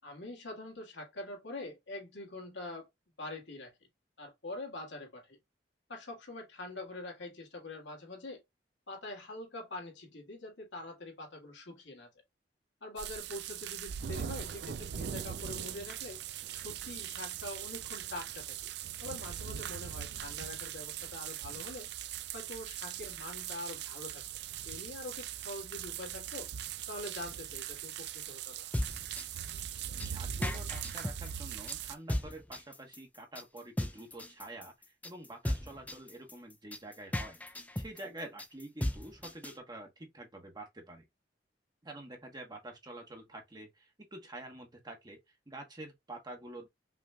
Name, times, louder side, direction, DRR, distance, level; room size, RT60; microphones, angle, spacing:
voice 1, 0.0-2.9 3.2-3.7 4.2-5.4 5.9-8.4 8.9-12.1 12.8-16.2 16.5-18.7 19.0-21.9 22.3-24.2 24.6-26.5 26.9-28.6, left 2 dB, 80° left, 2.4 m, -44 dB
sound 1, 13.0-31.9, right 10 dB, 65° right, 0.4 m, -41 dB
sound 2, 28.5-39.5, left 1 dB, 10° left, 0.6 m, -36 dB
voice 2, 30.0-34.7 35.0-37.4 37.8-41.1 41.8-45.2 45.5-46.7, right 1 dB, 25° right, 1.2 m, -47 dB
5.7 x 3.1 x 2.3 m
head